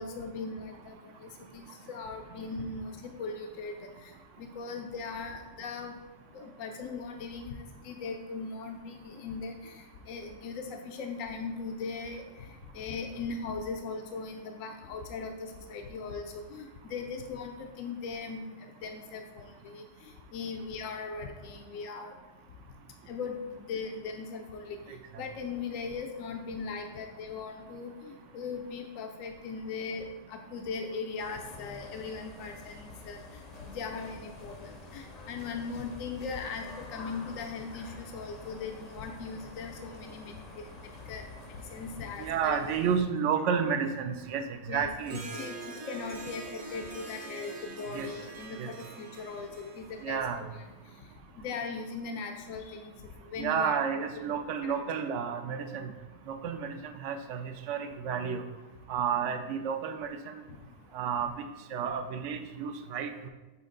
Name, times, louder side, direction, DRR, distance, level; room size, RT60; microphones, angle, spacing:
voice 1, 0.0-4.1 4.4-6.0 6.3-12.5 12.7-19.8 20.3-22.1 23.1-24.8 25.2-33.2 33.7-41.2 41.7-42.7 44.7-50.2 51.4-52.9 53.3-53.8 54.3-54.8, left 4 dB, 90° left, 4 dB, 1.0 m, -39 dB
sound 1, 31.2-43.0, left 3 dB, 45° left, 0.6 m, -48 dB
voice 2, 42.2-44.4 44.7-45.2 47.9-48.1 48.6-48.7 50.0-50.4 53.4-55.9 56.3-58.4 58.9-60.4 60.9-61.3 61.7-63.3, right 7 dB, 70° right, 7 dB, 0.9 m, -31 dB
Harp, 45.0-50.7, right 3 dB, 40° right, 0.6 m, -45 dB
7.3 x 4.3 x 3.8 m, 1.2 s
omnidirectional pair, 1.3 m